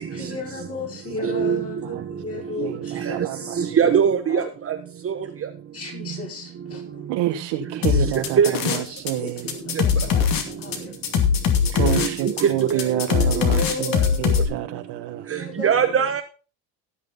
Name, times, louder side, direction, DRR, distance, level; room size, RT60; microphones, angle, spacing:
voice 1, 0.1-3.2 4.3-4.4 5.7-7.1 8.6-8.8 9.2-11.0 11.5-11.6 13.4-14.2 15.3-16.0, left 3 dB, 35° left, 0 dB, 4.7 m, -34 dB
voice 2, 1.2-1.6 3.0-3.2 3.6-4.7 5.0-5.1 8.4-8.5 11.8-13.4 13.9-14.0 15.3-16.2, right 7 dB, 30° right, 6 dB, 1.1 m, -22 dB
voice 3, 2.6-4.0 7.1-9.6 11.7-15.3, right 12 dB, 75° right, 7 dB, 1.7 m, -28 dB
sound 1, 7.8-9.1 9.4-14.4, left 7 dB, 50° left, 2.4 m, -21 dB
16.5 x 6.6 x 4.0 m, 0.35 s
cardioid pair, 115°, 43 cm